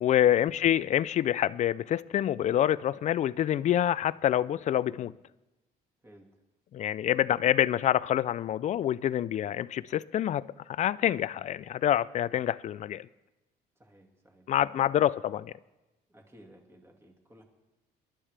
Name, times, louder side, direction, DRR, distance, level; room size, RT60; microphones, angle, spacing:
voice 1, 0.0-5.1 6.7-13.1 14.5-15.5, left 11 dB, 45° left, 0.4 m, -26 dB
voice 2, 13.8-14.4 16.1-17.4, equal, 15° right, 2.1 m, -56 dB
22.0 x 11.5 x 3.4 m
cardioid pair, 110°, 17 cm